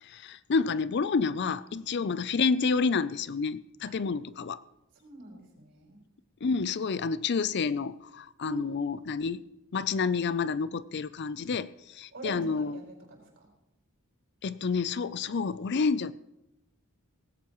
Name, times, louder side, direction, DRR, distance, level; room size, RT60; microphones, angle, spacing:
voice 1, 0.0-4.6 6.4-9.4 9.7-12.8 14.4-16.1, left 5 dB, 55° left, 16 dB, 0.5 m, -29 dB
voice 2, 5.0-6.0 8.4-9.3 12.1-13.5, right 3 dB, 60° right, -1 dB, 4.9 m, -44 dB
18.5 x 16.5 x 3.1 m, 0.86 s
head